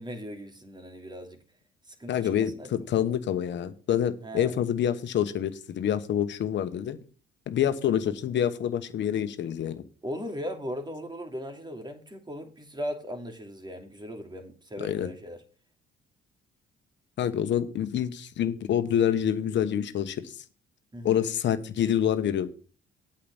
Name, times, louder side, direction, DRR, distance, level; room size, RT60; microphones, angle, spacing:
voice 1, 0.0-1.4 1.9-2.8 4.2-4.5 10.0-15.4 20.9-21.3, equal, 20° right, 2.8 m, -38 dB
voice 2, 2.1-7.0 7.5-9.8 14.8-15.1 17.2-20.4 21.0-22.5, left 9 dB, 65° left, 1.2 m, -27 dB
8.6 x 5.7 x 7.2 m
supercardioid pair, 65°, 20 cm